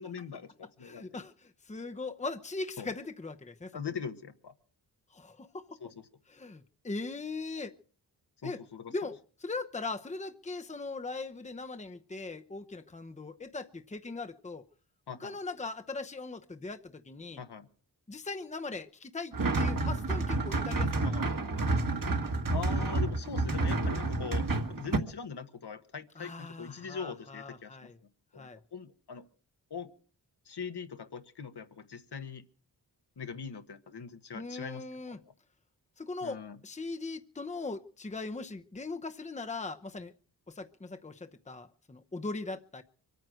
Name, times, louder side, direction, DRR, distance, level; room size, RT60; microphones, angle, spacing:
voice 1, 0.0-1.1 2.8-2.9 3.7-4.5 5.8-5.9 8.4-9.1 15.1-15.4 17.4-17.7 21.0-21.3 22.5-27.9 28.3-29.3 29.7-29.9 30.4-32.4 33.2-34.8 35.2-35.3 36.2-36.6, left 6 dB, 70° left, 1.4 m, -41 dB
voice 2, 0.8-3.8 5.1-5.8 6.3-7.7 8.4-8.6 8.9-9.2 9.4-14.6 15.2-17.4 18.1-21.2 26.2-28.0 28.4-28.6 34.3-35.2 36.0-40.1 40.5-42.8, left 3 dB, 15° left, 0.8 m, -40 dB
sound 1, 19.3-25.0, right 2 dB, 50° right, 1.7 m, -29 dB
24.5 x 9.2 x 6.4 m
wide cardioid pair, 110°, 41 cm